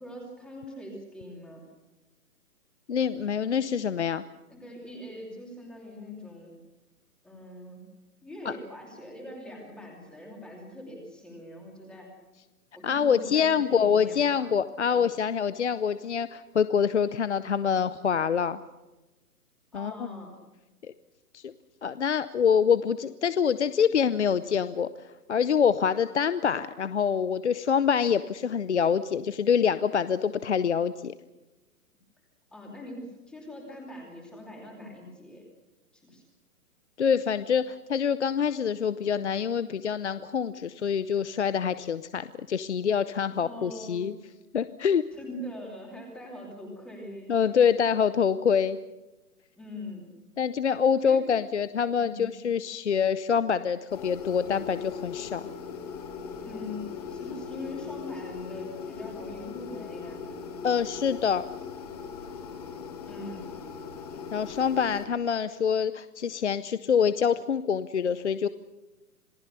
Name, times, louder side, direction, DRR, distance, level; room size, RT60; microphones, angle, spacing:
voice 1, 0.0-1.6 4.5-6.5 7.2-7.8 8.2-12.1 12.7-14.5 14.9-15.1 19.7-20.3 32.5-35.4 35.9-36.2 43.5-44.1 45.1-47.4 49.6-50.0 51.0-51.2 52.0-52.4 56.4-60.2 63.0-63.4, left 1 dB, ahead, -1 dB, 2.8 m, -42 dB
voice 2, 2.9-4.2 8.4-8.5 12.8-18.6 19.7-20.1 20.8-20.9 21.3-21.5 21.8-31.1 37.0-44.1 44.5-45.0 47.3-48.8 50.4-55.4 60.6-61.4 64.3-68.5, left 7 dB, 50° left, 14 dB, 0.7 m, -25 dB
sound 1, 53.9-65.1, left 6 dB, 25° left, 2.8 m, -39 dB
27.0 x 19.0 x 6.8 m, 1.1 s
hypercardioid pair, 175°, 46 cm